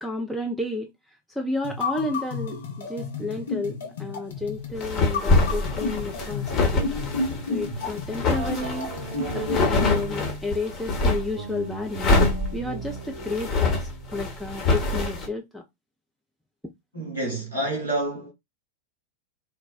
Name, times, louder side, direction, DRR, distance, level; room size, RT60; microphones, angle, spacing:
voice 1, 0.0-7.0 7.5-8.9 9.3-12.1 12.5-15.6, left 2 dB, ahead, 0.4 m, -32 dB
sound 1, 1.6-10.1, left 4 dB, 65° left, 0.7 m, -32 dB
sound 2, 4.7-11.4 11.9-15.3, left 2 dB, 35° left, 1.0 m, -25 dB
sound 3, 8.3-10.6 11.3-14.7, right 4 dB, 60° right, 0.5 m, -38 dB
voice 2, 16.9-18.3, right 1 dB, 90° left, 1.4 m, -28 dB
3.3 x 2.0 x 2.2 m
figure-of-eight pair, 90°, 0 cm